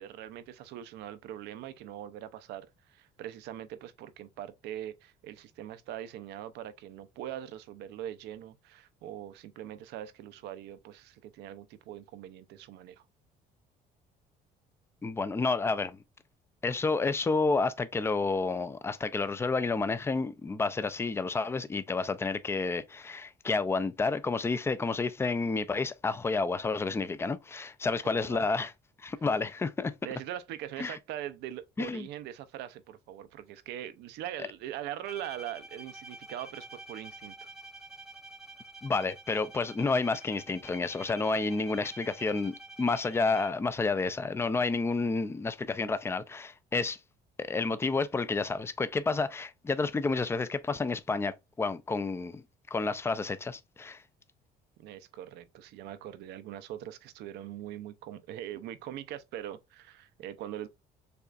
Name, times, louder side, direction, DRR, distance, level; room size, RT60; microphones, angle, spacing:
voice 1, 0.0-13.0 27.9-28.5 30.0-37.5 54.8-60.7, right 11 dB, 85° right, 0.6 m, -42 dB
voice 2, 15.0-16.0 16.6-28.7 29.0-29.9 30.8-31.0 31.8-32.1 38.8-47.0 47.4-52.4 52.7-54.0, left 3 dB, 15° left, 0.4 m, -30 dB
Bowed string instrument, 35.0-43.8, right 2 dB, 5° right, 1.0 m, -48 dB
6.8 x 2.4 x 2.4 m
cardioid pair, 110°, 17 cm